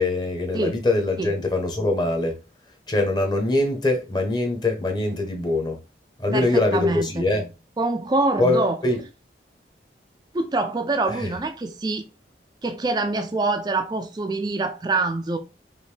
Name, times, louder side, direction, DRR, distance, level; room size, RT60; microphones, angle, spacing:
voice 1, 0.0-2.3 2.9-5.8 6.2-7.5 8.4-9.0, left 2 dB, 25° left, 0.9 m, -23 dB
voice 2, 6.3-7.3 7.8-8.8 10.3-12.0 12.6-15.4, right 3 dB, 25° right, 0.3 m, -25 dB
5.1 x 2.6 x 3.2 m
head